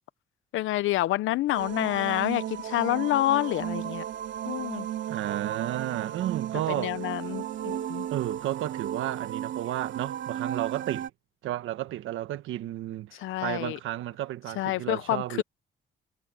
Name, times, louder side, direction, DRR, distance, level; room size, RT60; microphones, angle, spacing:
voice 1, 0.5-4.0 4.5-4.9 6.7-8.1 13.1-13.8 14.6-15.4, left 15 dB, 85° left, 0.7 m, -28 dB
sound 1, 1.5-11.1, right 11 dB, 70° right, 2.6 m, -35 dB
voice 2, 5.1-7.1 8.1-11.1 11.4-15.4, right 13 dB, 85° right, 1.3 m, -32 dB
cardioid pair, 90°, 20 cm